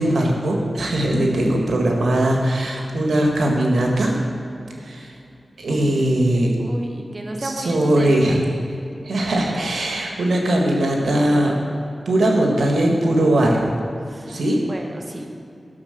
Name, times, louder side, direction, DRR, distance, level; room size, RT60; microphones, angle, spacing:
voice 1, 0.0-4.1 4.8-5.1 5.6-6.5 7.4-8.4 9.0-11.6 12.0-13.7 14.3-14.6, right 1 dB, 90° right, 0 dB, 1.6 m, -20 dB
voice 2, 5.7-6.0 6.3-8.4 14.1-14.3 14.7-15.3, right 1 dB, 40° right, 2 dB, 1.6 m, -33 dB
13.0 x 6.7 x 6.6 m, 2.7 s
cardioid pair, 55°, 0 cm